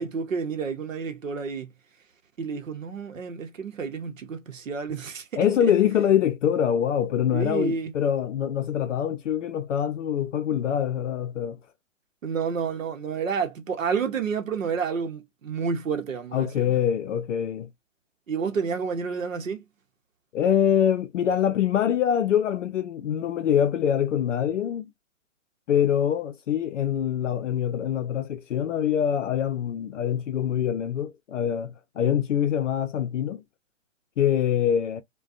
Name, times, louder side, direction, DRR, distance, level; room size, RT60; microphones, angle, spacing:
voice 1, 0.0-1.7 2.4-5.3 7.3-7.9 12.2-16.8 18.3-19.6, right 5 dB, 80° right, 0.8 m, -30 dB
voice 2, 5.4-11.6 16.3-17.7 20.3-24.9 25.7-33.4 34.2-35.0, left 9 dB, 70° left, 0.5 m, -24 dB
2.4 x 2.2 x 2.5 m
hypercardioid pair, 130°, 38 cm